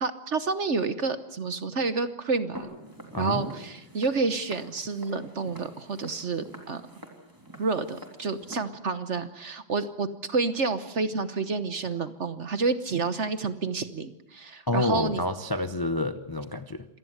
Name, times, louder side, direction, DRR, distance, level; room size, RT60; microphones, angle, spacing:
voice 1, 0.0-2.7 3.2-6.8 7.6-15.2, right 4 dB, 45° right, 12 dB, 1.1 m, -29 dB
Walk footsteps, 2.5-8.6, right 1 dB, 10° right, 3.4 m, -45 dB
voice 2, 3.1-3.4 14.7-16.9, left 2 dB, 35° left, 10 dB, 0.3 m, -28 dB
26.0 x 18.5 x 8.0 m, 0.86 s
omnidirectional pair, 2.1 m